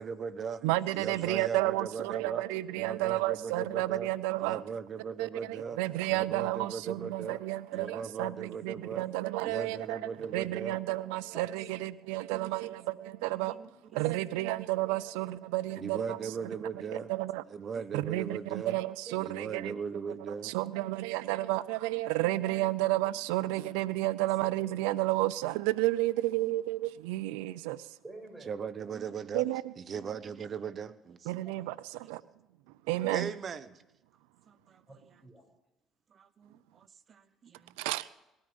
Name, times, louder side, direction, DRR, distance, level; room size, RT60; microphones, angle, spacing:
voice 1, 0.0-0.7 0.9-2.4 2.8-4.1 4.4-5.8 6.1-7.4 7.7-9.1 9.4-10.8 12.3-12.7 13.2-13.7 14.3-14.5 15.8-17.1 17.5-18.8 19.2-20.6 23.6-23.9 24.2-24.3 26.4-26.6 28.5-29.4 29.8-31.3 33.1-33.8 34.5-34.8 36.1-37.8, right 6 dB, 45° right, 1.1 m, -39 dB
voice 2, 0.6-4.6 5.2-10.0 10.3-13.5 14.0-16.3 16.9-17.4 17.9-19.7 20.4-27.9 29.3-29.6 31.3-32.2 32.9-33.3 37.8-38.1, right 17 dB, 85° right, 0.4 m, -31 dB
voice 3, 28.0-28.5 34.9-35.4, right 3 dB, 20° right, 6.3 m, -48 dB
19.0 x 13.0 x 5.3 m
supercardioid pair, 70°, 0 cm